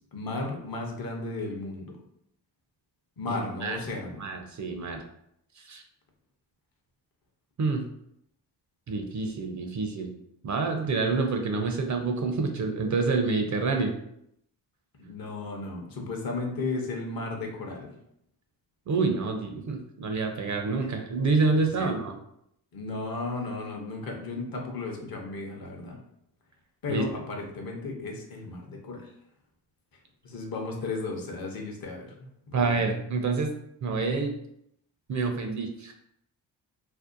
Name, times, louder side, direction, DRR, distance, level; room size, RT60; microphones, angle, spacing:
voice 1, 0.1-2.0 3.2-4.2 15.0-18.0 20.8-20.9 21.7-21.9 22.7-26.0 26.8-29.1 30.2-32.2 32.5-32.8, left 3 dB, 50° left, 1 dB, 0.7 m, -34 dB
voice 2, 3.3-3.8 4.2-5.0 5.6-5.8 7.6-7.8 8.9-10.1 10.4-14.0 18.9-22.2 26.9-27.0 32.5-33.5 33.8-34.4 35.1-35.9, right 4 dB, 40° right, 4 dB, 0.5 m, -27 dB
2.6 x 2.1 x 2.5 m, 0.75 s
supercardioid pair, 55°, 45 cm